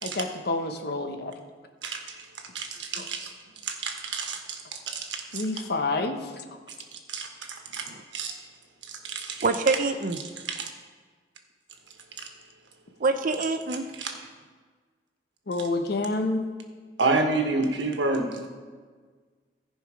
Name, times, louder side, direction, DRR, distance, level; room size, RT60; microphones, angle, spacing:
voice 1, 0.0-1.3 3.0-3.1 5.3-6.4 15.5-16.4, left 2 dB, 65° left, 6 dB, 0.9 m, -28 dB
voice 2, 1.8-2.3 2.5-3.3 3.6-5.5 6.9-8.3 8.9-9.4 10.5-10.7 12.2-12.3 14.0-14.1 17.0-18.5, right 3 dB, 80° right, 4 dB, 1.3 m, -30 dB
voice 3, 9.4-10.2 13.0-13.8, right 3 dB, 50° right, 6 dB, 0.5 m, -25 dB
14.5 x 5.3 x 5.0 m, 1.5 s
head